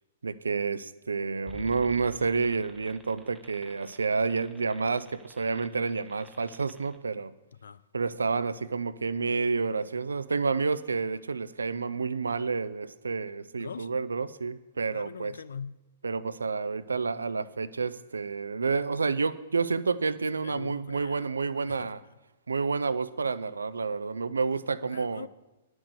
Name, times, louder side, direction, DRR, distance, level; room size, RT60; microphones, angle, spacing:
voice 1, 0.2-7.3 7.9-15.3 16.0-22.0 22.5-25.3, right 4 dB, 75° right, 0.5 m, -29 dB
sound 1, 1.5-7.0, left 3 dB, ahead, 0.9 m, -52 dB
voice 2, 7.5-7.8 13.5-13.9 14.9-15.8 20.4-21.3 21.6-22.0 24.8-25.3, left 6 dB, 65° left, 0.4 m, -42 dB
10.0 x 6.2 x 8.0 m
figure-of-eight pair, 110°, 0 cm